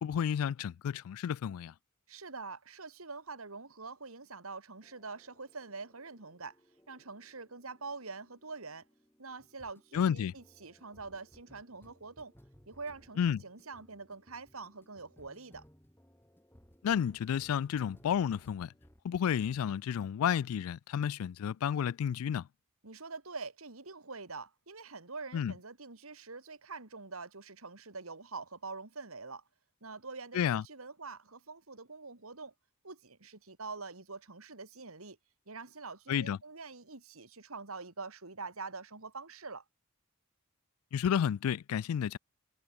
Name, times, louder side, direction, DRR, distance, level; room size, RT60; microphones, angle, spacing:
voice 1, 0.0-1.7 9.9-10.3 13.2-13.4 16.8-18.7 19.0-22.5 25.3-25.5 30.3-30.6 36.1-36.4 40.9-42.2, left 8 dB, 90° left, 0.3 m, -31 dB
voice 2, 2.1-6.6 6.9-8.8 9.2-12.3 12.7-15.6 22.8-29.4 29.8-32.5 32.8-35.2 35.5-39.6, right 4 dB, 85° right, 2.8 m, -45 dB
sound 1, 4.8-19.1 19.4-19.7, equal, 10° left, 5.1 m, -63 dB
head